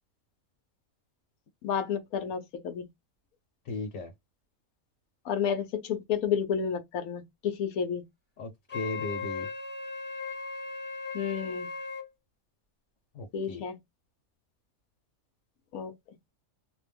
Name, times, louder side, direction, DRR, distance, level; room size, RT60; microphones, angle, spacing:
voice 1, 1.6-2.9 5.3-8.0 11.1-11.7 13.3-13.8 15.7-15.9, left 7 dB, 90° left, 1.2 m, -31 dB
voice 2, 3.6-4.1 8.4-9.5 13.1-13.6, left 2 dB, 70° left, 1.2 m, -36 dB
Wind instrument woodwind instrument, 8.7-12.1, left 4 dB, 10° left, 0.7 m, -37 dB
2.8 x 2.1 x 3.3 m
omnidirectional pair, 1.5 m